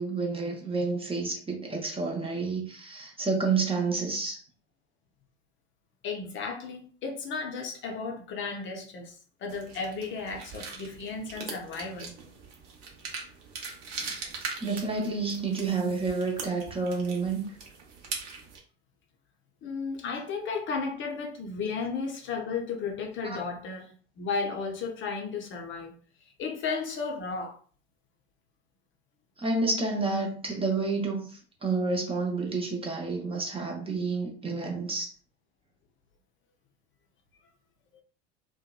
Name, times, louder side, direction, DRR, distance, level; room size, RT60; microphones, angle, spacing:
voice 1, 0.0-4.4 14.6-17.4 29.4-31.3 31.6-35.1, right 3 dB, 15° right, 0.5 m, -29 dB
voice 2, 6.0-12.1 19.6-26.0 26.4-27.6, left 4 dB, 35° left, 0.5 m, -34 dB
sound 1, 9.5-18.6, right 4 dB, 55° right, 0.8 m, -41 dB
2.7 x 2.2 x 2.2 m
hypercardioid pair, 75°, 34 cm